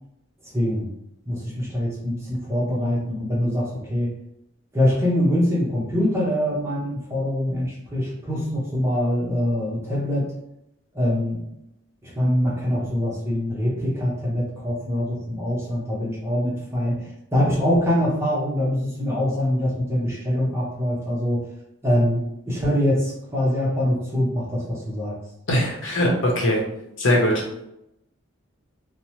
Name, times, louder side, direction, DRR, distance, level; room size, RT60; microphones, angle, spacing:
voice 1, 0.4-0.9 1.3-4.1 4.7-10.3 10.9-11.4 12.0-21.4 21.8-25.2, left 1 dB, 10° right, -5 dB, 0.7 m, -24 dB
voice 2, 25.5-26.6 27.0-27.4, left 1 dB, 65° left, -2 dB, 0.8 m, -20 dB
2.9 x 2.0 x 3.0 m, 0.83 s
head